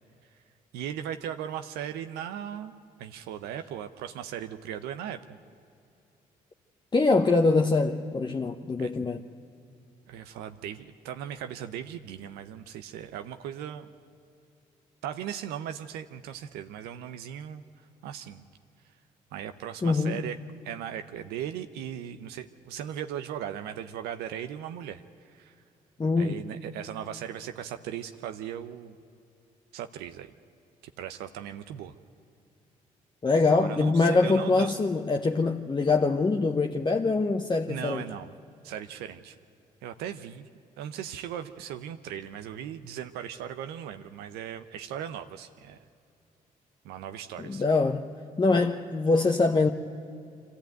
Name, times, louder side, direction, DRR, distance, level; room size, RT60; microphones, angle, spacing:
voice 1, 0.7-2.7 3.0-5.4 8.8-8.9 10.1-13.9 15.0-17.6 18.0-18.4 19.3-20.4 20.6-25.6 26.2-29.0 29.7-30.3 31.0-31.9 33.5-34.8 37.7-38.3 38.6-39.4 39.8-40.5 40.8-45.8 46.8-47.6, right 10 dB, 85° right, 0.6 m, -38 dB
voice 2, 6.9-9.2 19.8-20.2 26.0-26.4 33.2-38.0 47.4-48.1 48.4-49.7, left 3 dB, 30° left, 1.0 m, -24 dB
23.5 x 14.5 x 9.1 m
supercardioid pair, 60°, 16 cm